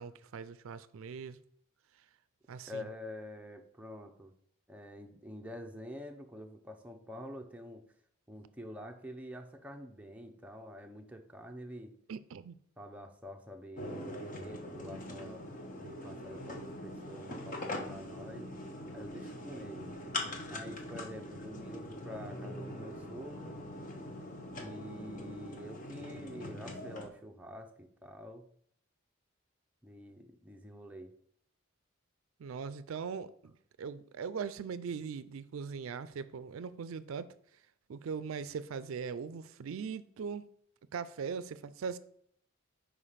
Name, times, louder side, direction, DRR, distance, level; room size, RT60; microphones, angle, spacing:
voice 1, 0.0-1.4 2.5-2.8 12.1-12.6 32.4-33.5 33.8-37.3 37.9-40.5 40.9-42.0, right 6 dB, 75° right, 0.4 m, -40 dB
voice 2, 2.7-4.3 4.7-7.8 8.3-11.9 12.8-15.5 15.7-18.5 18.9-19.9 20.5-23.6 24.5-28.4 29.8-31.1, left 1 dB, 5° right, 0.6 m, -47 dB
sound 1, 13.8-27.1, left 1 dB, 40° left, 1.0 m, -42 dB
5.0 x 4.9 x 5.6 m
head